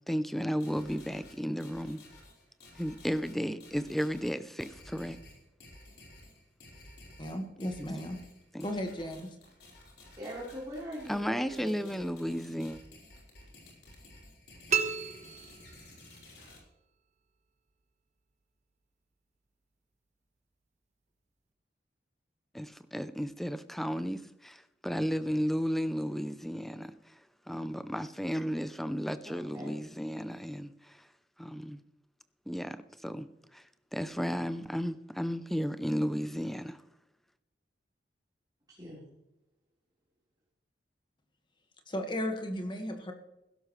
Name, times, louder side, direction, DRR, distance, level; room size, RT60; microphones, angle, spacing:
voice 1, 0.1-2.0 2.8-5.2 7.8-7.9 8.5-8.7 11.1-12.8 22.5-27.1 27.5-31.0 31.4-31.8 32.5-33.6 33.9-36.8, equal, ahead, 0.5 m, -34 dB
sound 1, 0.6-16.6, left 2 dB, 65° left, 4.8 m, -54 dB
voice 2, 7.2-8.2 8.6-9.3 41.9-43.1, equal, 25° left, 1.6 m, -35 dB
voice 3, 10.2-12.0 29.2-29.8 38.8-39.1, equal, 20° right, 4.3 m, -42 dB
sound 2, 14.7-16.3, right 7 dB, 40° right, 1.0 m, -33 dB
16.5 x 12.5 x 3.2 m
head